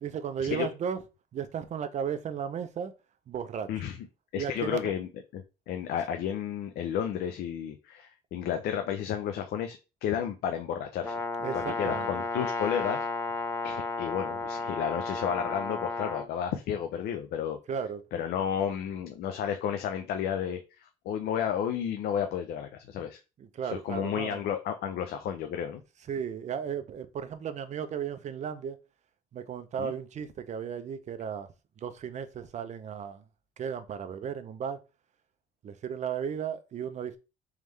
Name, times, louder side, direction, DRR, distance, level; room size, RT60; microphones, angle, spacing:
voice 1, 0.0-1.0 1.3-2.9 3.3-3.9 4.4-4.9 11.4-12.1 17.7-18.0 23.4-24.4 26.1-28.8 29.3-31.5 31.8-33.2 33.6-34.8 35.6-37.2, right 8 dB, 45° right, 0.6 m, -35 dB
voice 2, 4.3-11.1 11.5-13.1 13.6-17.6 18.1-23.2 23.6-25.8 29.8-29.9, left 8 dB, 70° left, 0.5 m, -32 dB
Brass instrument, 11.0-16.3, left 3 dB, 15° left, 1.0 m, -33 dB
3.6 x 3.2 x 3.2 m
cardioid pair, 110°, 17 cm